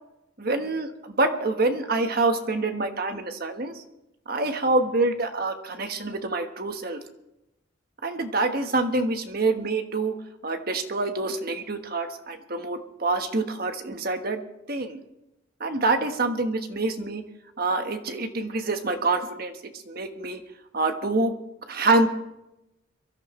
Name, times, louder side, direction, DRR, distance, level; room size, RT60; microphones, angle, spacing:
voice 1, 0.4-3.7 4.3-7.0 8.0-10.1 10.4-14.4 14.7-15.0 15.6-17.2 17.6-20.4 20.7-21.3 21.7-22.1, right 2 dB, 50° right, 6 dB, 1.4 m, -26 dB
23.5 x 13.5 x 3.2 m, 0.90 s
head